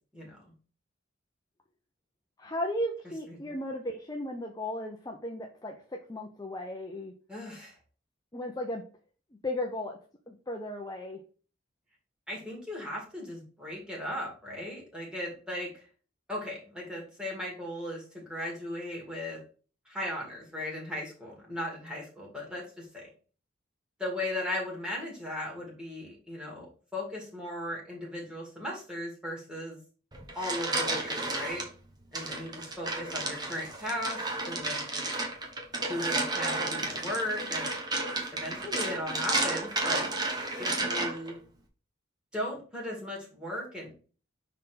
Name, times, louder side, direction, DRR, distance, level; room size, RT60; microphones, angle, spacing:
voice 1, 0.1-0.5 3.3-3.5 7.3-7.8 12.3-15.8 16.3-19.4 19.9-23.1 24.0-29.8 30.4-31.6 32.1-35.0 35.9-37.7 38.3-40.1 40.6-41.4 42.3-43.9, left 1 dB, 5° right, -3 dB, 2.5 m, -37 dB
voice 2, 2.4-7.1 8.3-8.8 9.4-10.0 10.3-11.2, left 1 dB, 20° left, 1 dB, 0.7 m, -35 dB
sound 1, 30.1-31.7 32.1-41.3, right 2 dB, 20° right, 1.1 m, -32 dB
5.6 x 4.1 x 5.1 m, 0.39 s
head